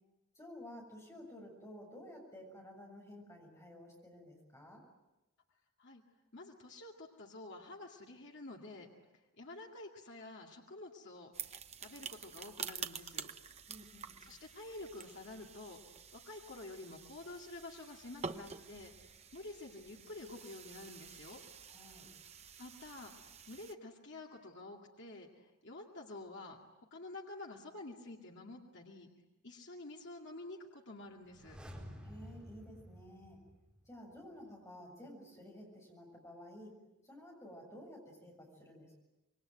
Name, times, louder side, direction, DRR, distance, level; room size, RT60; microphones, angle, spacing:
voice 1, 0.4-4.8 13.7-14.2 21.7-22.1 32.0-33.4 33.9-36.7 37.0-39.0, left 1 dB, 15° left, 0 dB, 7.1 m, -52 dB
voice 2, 6.3-8.9 9.1-13.3 14.2-15.8 16.1-21.4 22.6-26.6 26.9-29.1 29.4-31.6, left 2 dB, 55° left, 0 dB, 2.3 m, -49 dB
sound 1, 11.3-23.7, right 6 dB, 30° right, 0.9 m, -48 dB
sound 2, 31.2-34.1 34.4-34.5, equal, 5° right, 4.3 m, -52 dB
26.5 x 23.0 x 9.2 m, 1.0 s
head